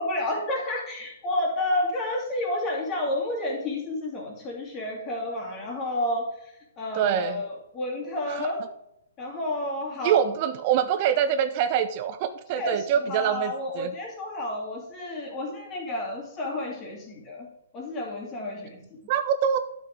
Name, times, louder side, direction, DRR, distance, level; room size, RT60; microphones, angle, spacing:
voice 1, 0.0-8.6 9.2-10.2 12.5-17.5 17.7-19.0, left 1 dB, 25° left, -1 dB, 2.8 m, -30 dB
voice 2, 6.9-7.4 8.3-8.5 10.0-13.9 19.1-19.6, right 9 dB, 40° right, 11 dB, 0.5 m, -25 dB
12.0 x 6.0 x 3.7 m, 0.80 s
figure-of-eight pair, 120°, 0 cm